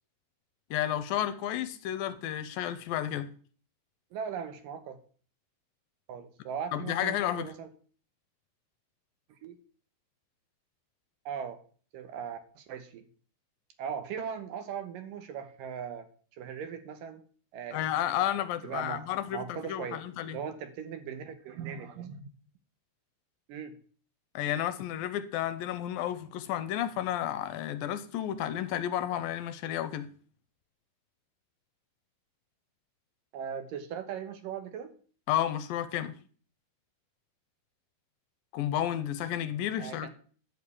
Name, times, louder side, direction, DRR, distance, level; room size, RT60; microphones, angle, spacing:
voice 1, 0.7-3.3 6.7-7.5 17.7-20.4 24.4-30.1 35.3-36.1 38.5-40.1, left 11 dB, 80° left, 2.3 m, -32 dB
voice 2, 4.1-5.0 6.1-7.7 9.4-9.6 11.3-11.6 11.9-13.0 13.8-16.1 16.4-17.2 17.5-17.8 18.2-18.4 18.6-19.1 19.3-20.0 20.3-22.3 23.5-23.7 33.3-34.9 39.8-40.1, right 7 dB, 70° right, 2.5 m, -39 dB
11.0 x 5.2 x 8.3 m
omnidirectional pair, 4.3 m